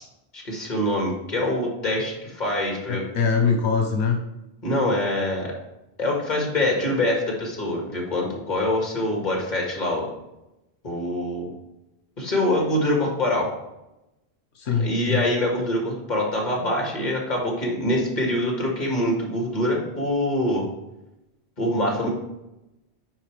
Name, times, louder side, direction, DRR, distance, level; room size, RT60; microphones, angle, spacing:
voice 1, 0.3-3.0 4.6-5.5 6.0-10.1 10.8-11.5 12.2-13.5 14.8-20.7 21.6-22.1, left 1 dB, 45° left, -1 dB, 1.9 m, -24 dB
voice 2, 2.9-4.2 14.5-15.2, left 5 dB, 85° left, 3 dB, 1.1 m, -23 dB
9.2 x 4.7 x 3.3 m, 0.91 s
omnidirectional pair, 1.1 m